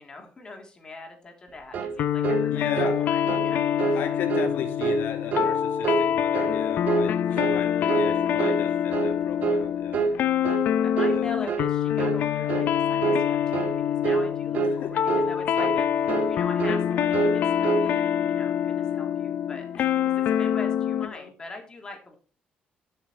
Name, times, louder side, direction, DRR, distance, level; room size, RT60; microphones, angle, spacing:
voice 1, 0.0-3.6 3.9-4.0 7.3-7.7 9.9-10.3 10.6-22.2, left 3 dB, 25° left, 3 dB, 3.2 m, -42 dB
sound 1, 1.7-2.0 2.2-2.5 2.8-3.0 3.3-3.5 3.8-4.0 4.3-4.5 4.8-5.0 5.3-5.5 5.8-6.1 6.3-6.6 6.9-7.1 7.4-7.6 7.9-8.1 8.4-8.6 8.9-9.2 9.4-9.6 9.9-10.2 10.4-10.7 11.0-11.2 11.5-11.7 12.0-12.2 12.5-12.7 13.0-13.2 13.5-13.8 14.0-14.3 14.5-14.8 15.1-15.3 15.6-15.8 16.1-16.3 16.6-16.8 17.1-17.9, right 5 dB, 55° right, 1.6 m, -26 dB
sound 2, 2.0-21.1, left 9 dB, 65° left, 0.6 m, -25 dB
voice 2, 2.5-2.9 3.9-10.0 11.0-11.3 14.8-14.9 21.1-21.3, left 8 dB, 80° left, 5 dB, 2.6 m, -35 dB
13.0 x 6.7 x 4.5 m, 0.37 s
cardioid pair, 145°, 3 cm